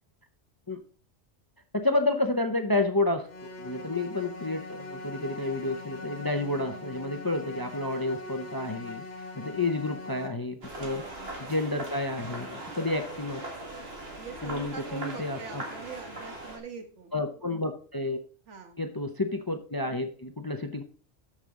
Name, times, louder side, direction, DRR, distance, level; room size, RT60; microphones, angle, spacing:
voice 1, 1.7-9.0 9.3-13.4 14.4-15.6 17.1-18.2 18.8-20.8, left 2 dB, 25° left, 7 dB, 0.5 m, -30 dB
sound 1, 3.3-10.3, left 2 dB, 70° left, 1.9 m, -41 dB
voice 2, 9.4-9.8 10.8-11.1 14.2-17.1 18.5-18.8, right 6 dB, 75° right, 6 dB, 1.7 m, -43 dB
sound 2, 10.6-16.6, right 1 dB, 55° right, 2.0 m, -40 dB
13.5 x 5.4 x 3.7 m, 0.42 s
omnidirectional pair, 1.2 m